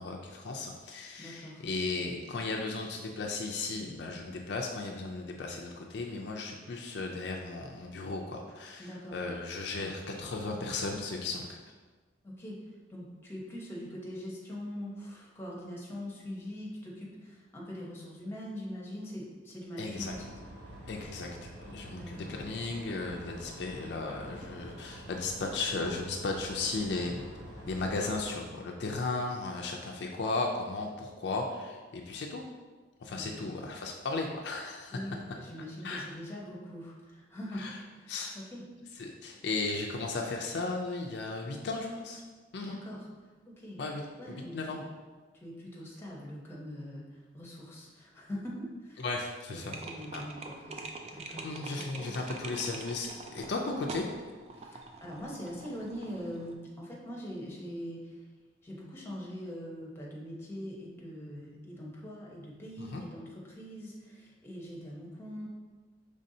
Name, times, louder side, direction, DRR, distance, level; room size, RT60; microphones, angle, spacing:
voice 1, 0.0-11.6 19.8-20.1 20.9-27.2 27.7-32.4 33.0-35.0 35.8-36.0 37.6-37.8 38.1-38.3 39.0-42.2 42.5-42.8 43.8-44.0 44.3-44.8 49.0-49.8 50.1-50.2 51.4-54.1 62.8-63.0, left 3 dB, 60° left, 0 dB, 0.4 m, -35 dB
voice 2, 1.2-1.6 8.8-9.2 9.6-9.9 12.2-12.6 12.9-20.2 21.9-22.3 33.1-33.6 34.9-38.6 42.6-43.1 43.5-43.8 44.2-44.8 45.4-49.0 49.5-50.4 50.7-50.8 51.1-51.5 52.0-52.3 54.5-58.2 58.6-65.5, equal, 15° left, -4 dB, 0.8 m, -42 dB
sound 1, 20.0-28.3, right 1 dB, 80° right, 0.9 m, -47 dB
sound 2, 49.6-56.5, right 3 dB, 35° right, 0.3 m, -44 dB
5.2 x 3.3 x 2.7 m, 1.4 s
head